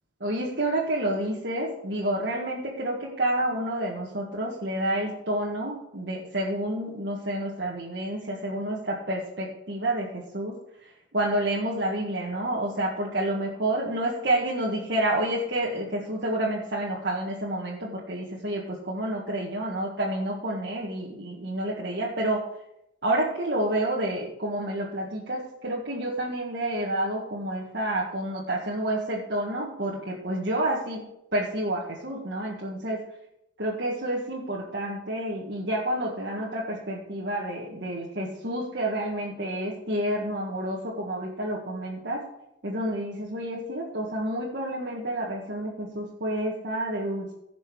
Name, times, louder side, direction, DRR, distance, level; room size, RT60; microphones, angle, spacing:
voice 1, 0.2-10.6 11.1-22.4 23.0-33.0 33.6-42.3 42.6-47.3, right 1 dB, 65° right, -5 dB, 1.8 m, -29 dB
16.0 x 6.3 x 4.8 m, 0.82 s
head